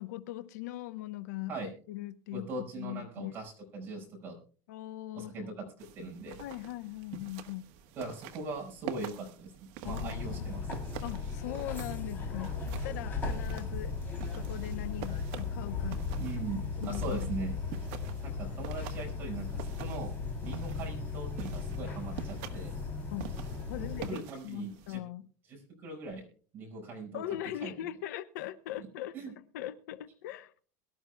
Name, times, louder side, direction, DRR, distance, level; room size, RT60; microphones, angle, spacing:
voice 1, 0.0-1.6 1.9-2.5 2.8-3.3 4.7-5.5 6.4-7.7 9.8-10.4 11.0-14.0 14.4-16.0 16.8-17.3 23.1-23.3 23.7-25.3 27.1-30.5, left 14 dB, 80° left, 0.9 m, -40 dB
voice 2, 2.3-4.4 5.1-6.4 8.0-10.7 16.2-17.5 18.2-20.1 20.4-22.7 23.7-25.0 25.5-26.3 26.5-27.2 27.6-27.7 29.1-29.3, right 3 dB, 25° right, 5.3 m, -40 dB
sound 1, 5.8-25.0, right 9 dB, 55° right, 1.4 m, -47 dB
sound 2, 9.8-24.1, left 4 dB, 20° left, 3.2 m, -36 dB
22.5 x 12.5 x 2.3 m
supercardioid pair, 170°, 9 cm